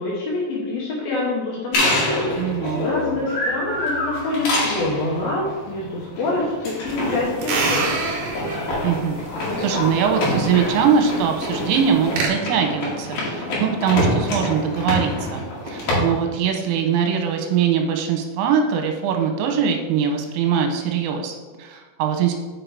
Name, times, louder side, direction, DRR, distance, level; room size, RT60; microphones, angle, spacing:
voice 1, 0.0-2.1 2.8-8.1, left 2 dB, 75° left, -4 dB, 2.2 m, -26 dB
sound 1, 1.7-16.0, left 1 dB, 55° left, 3.2 m, -26 dB
voice 2, 2.4-2.9 8.8-9.2 9.6-22.4, right 7 dB, 90° right, 4 dB, 3.4 m, -22 dB
sound 2, 6.9-12.3, right 4 dB, 65° right, 3.5 m, -29 dB
6.6 x 6.4 x 4.7 m, 1.3 s
omnidirectional pair, 6.0 m